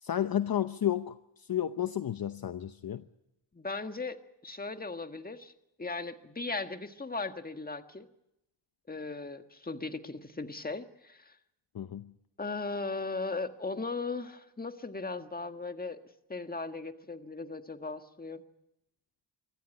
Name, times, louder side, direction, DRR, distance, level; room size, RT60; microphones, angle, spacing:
voice 1, 0.0-3.0 11.7-12.1, left 10 dB, 50° left, 11 dB, 0.8 m, -32 dB
voice 2, 3.5-4.2 4.4-5.5 5.8-8.1 8.9-11.3 12.4-16.0 16.3-18.4, left 3 dB, 20° left, 8 dB, 1.6 m, -37 dB
25.0 x 13.5 x 9.9 m, 0.86 s
cardioid pair, 80°, 47 cm